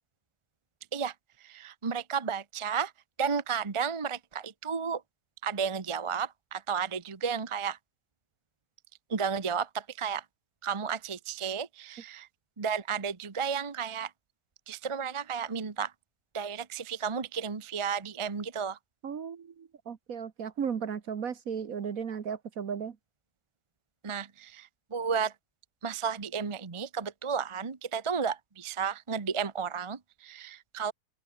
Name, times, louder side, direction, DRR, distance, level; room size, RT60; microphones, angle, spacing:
voice 1, 1.4-2.9 3.2-5.0 5.4-7.8 9.1-10.2 10.6-12.3 12.6-14.1 14.7-15.9 16.3-18.8 24.0-25.3 25.8-30.9, right 6 dB, 25° right, 0.8 m, -33 dB
voice 2, 19.0-23.0, right 7 dB, 60° right, 1.7 m, -35 dB
open air
omnidirectional pair, 1.8 m